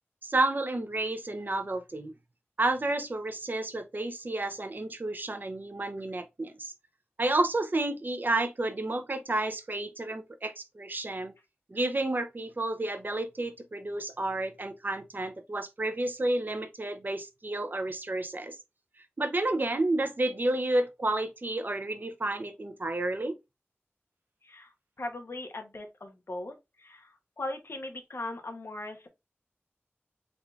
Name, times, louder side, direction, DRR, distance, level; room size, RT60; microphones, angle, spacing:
voice 1, 0.2-2.1 2.6-6.7 7.2-11.3 11.7-18.5 19.2-23.4, right 2 dB, 45° right, 0.7 m, -31 dB
voice 2, 24.4-29.1, left 2 dB, 70° left, 0.9 m, -39 dB
3.7 x 3.6 x 2.4 m
wide cardioid pair, 55°, 4 cm